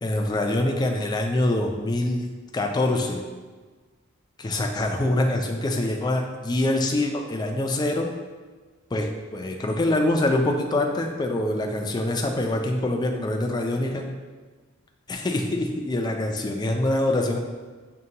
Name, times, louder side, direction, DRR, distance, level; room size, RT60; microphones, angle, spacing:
voice 1, 0.0-3.2 4.4-8.1 8.9-14.1 15.1-17.4, left 1 dB, 20° left, 3 dB, 0.3 m, -25 dB
6.3 x 2.2 x 2.7 m, 1.4 s
head